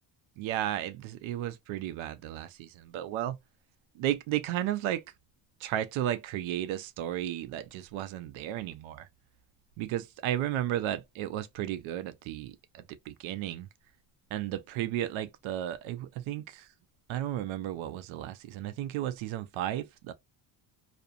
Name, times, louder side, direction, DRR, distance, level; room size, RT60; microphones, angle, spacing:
voice 1, 0.4-3.4 3.9-5.0 5.6-9.1 9.8-13.7 14.3-16.7 17.1-20.1, right 12 dB, 80° right, 0.5 m, -34 dB
2.4 x 2.1 x 2.5 m
cardioid pair, 105°, 47 cm